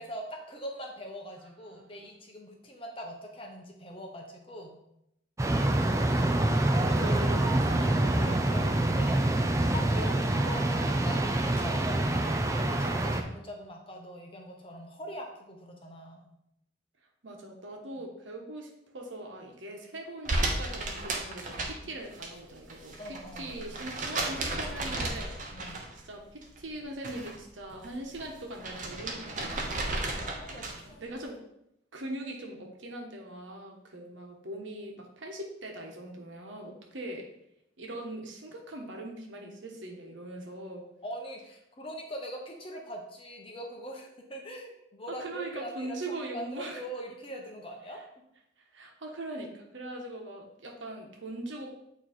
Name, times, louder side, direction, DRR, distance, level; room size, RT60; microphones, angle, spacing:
voice 1, 0.0-4.8 6.8-9.2 9.6-16.3 21.8-21.9 23.0-23.7 25.5-25.9 29.8-29.9 30.4-31.1 41.0-46.0 46.3-48.0, equal, 30° left, 1 dB, 1.0 m, -42 dB
voice 2, 1.6-2.1 6.2-8.6 17.2-29.6 30.9-31.4 31.9-37.2 37.8-40.8 45.2-46.8 48.7-51.7, right 1 dB, 80° right, 1 dB, 1.2 m, -41 dB
sound 1, 5.4-13.2, right 1 dB, 15° right, 0.4 m, -26 dB
sound 2, 20.3-22.3 22.6-26.1 26.4-27.4 27.7-30.9, right 2 dB, 40° right, 0.8 m, -34 dB
8.8 x 3.1 x 4.3 m, 0.80 s
head